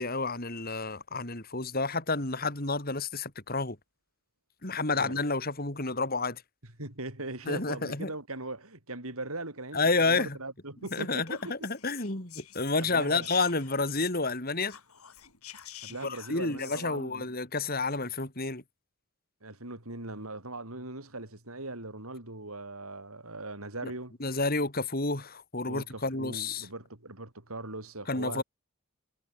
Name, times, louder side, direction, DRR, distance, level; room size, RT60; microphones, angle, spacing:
voice 1, 0.0-3.8 4.6-6.4 7.5-8.1 9.7-10.4 10.9-14.8 16.0-18.6 24.2-26.7 28.1-28.4, left 3 dB, 45° left, 3.7 m, -30 dB
voice 2, 6.8-11.7 12.8-13.3 15.8-17.3 19.4-24.2 25.7-28.4, right 2 dB, 80° right, 6.3 m, -40 dB
Whispering, 10.8-14.4 14.6-16.9, left 11 dB, 85° left, 5.6 m, -49 dB
head